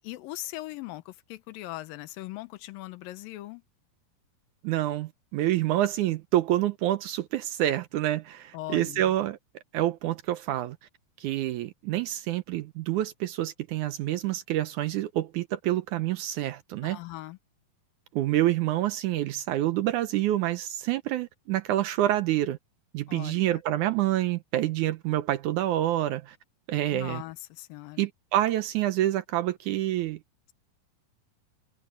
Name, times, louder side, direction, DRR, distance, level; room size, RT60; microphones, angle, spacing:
voice 1, 0.0-3.6 8.5-9.1 16.9-17.4 23.1-23.6 26.9-28.1, left 17 dB, 85° left, 2.5 m, -40 dB
voice 2, 4.6-9.4 9.7-10.8 11.2-17.0 18.1-22.6 22.9-26.4 26.7-27.2 28.0-30.2, right 14 dB, 75° right, 1.9 m, -27 dB
omnidirectional pair, 4.0 m